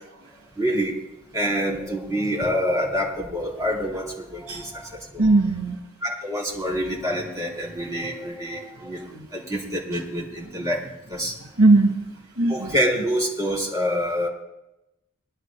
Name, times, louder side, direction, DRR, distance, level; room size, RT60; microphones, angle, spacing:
voice 1, 0.6-0.9 1.3-5.2 6.0-9.0 9.3-10.8 11.1-11.3 12.5-14.3, equal, 15° right, -4 dB, 3.8 m, -26 dB
voice 2, 5.2-5.8 8.0-8.1 9.1-9.3 9.9-10.0 10.6-10.7 11.4-12.0 12.4-12.8, right 2 dB, 80° right, 3 dB, 1.5 m, -20 dB
26.5 x 11.0 x 2.2 m, 0.94 s
head